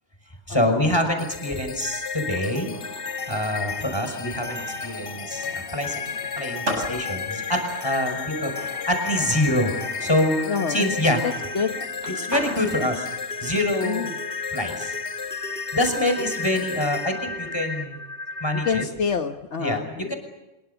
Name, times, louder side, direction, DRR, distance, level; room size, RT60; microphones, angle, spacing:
voice 1, 0.5-2.7 3.3-6.0 6.4-8.5 8.9-9.7 10.0-10.4 10.7-11.2 12.2-13.1 13.4-14.1 14.5-14.9 15.7-18.0 18.4-18.8 19.6-19.8 20.1-20.2, left 1 dB, 20° left, 5 dB, 5.9 m, -25 dB
sound 1, 1.2-18.8, left 5 dB, 50° left, 1.4 m, -32 dB
Skateboard, 1.3-17.2, equal, 70° right, 8.2 m, -40 dB
voice 2, 10.4-10.9 11.2-11.8 13.8-14.2 18.6-20.1, left 6 dB, 70° left, 5 dB, 1.5 m, -27 dB
26.0 x 23.5 x 7.0 m, 1.0 s
omnidirectional pair, 1.3 m